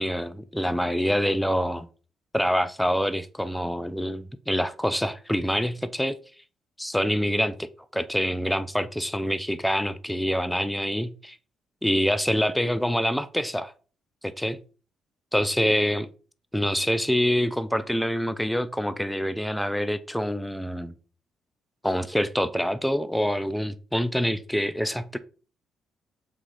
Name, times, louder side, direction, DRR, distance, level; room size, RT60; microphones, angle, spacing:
voice 1, 0.0-1.9 2.3-6.2 6.8-11.4 11.8-13.7 14.2-14.6 15.3-16.1 16.5-20.9 21.8-25.2, equal, 5° left, 0.4 m, -26 dB
3.9 x 2.8 x 4.8 m
cardioid pair, 90°, 0 cm